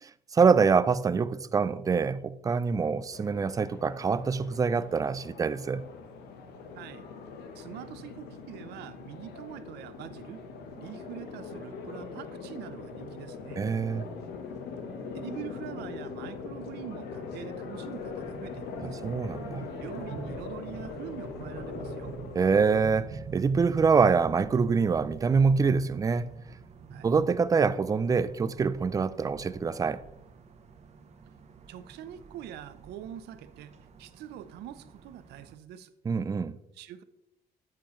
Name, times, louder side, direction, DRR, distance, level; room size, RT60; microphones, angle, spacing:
voice 1, 0.0-5.8 13.6-14.0 18.8-19.6 22.4-26.3 27.0-30.0 36.1-36.6, right 5 dB, 20° right, 0.4 m, -25 dB
sound 1, 3.1-22.9, left 4 dB, 75° left, 1.1 m, -41 dB
voice 2, 6.7-7.1 7.5-10.4 10.8-13.7 15.1-19.0 19.8-22.1 26.9-27.1 31.7-35.9 36.7-37.0, right 11 dB, 75° right, 0.7 m, -44 dB
sound 2, 17.7-35.6, right 5 dB, 40° right, 0.9 m, -46 dB
8.6 x 7.6 x 3.1 m
cardioid pair, 110°, 17 cm